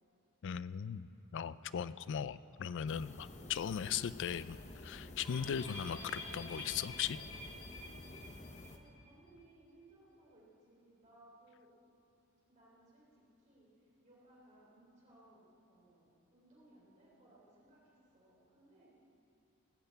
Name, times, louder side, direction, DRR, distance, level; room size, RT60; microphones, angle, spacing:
voice 1, 0.4-7.2, left 8 dB, 55° left, 16 dB, 0.3 m, -38 dB
sound 1, 2.9-8.8, left 2 dB, 30° left, 0.8 m, -51 dB
sound 2, 5.2-8.7 9.0-9.1 9.4-9.5, left 2 dB, 90° left, 3.4 m, -48 dB
voice 2, 8.7-11.7 12.4-18.9, right 1 dB, 35° right, -6 dB, 3.5 m, -64 dB
18.5 x 6.7 x 8.0 m, 2.8 s
head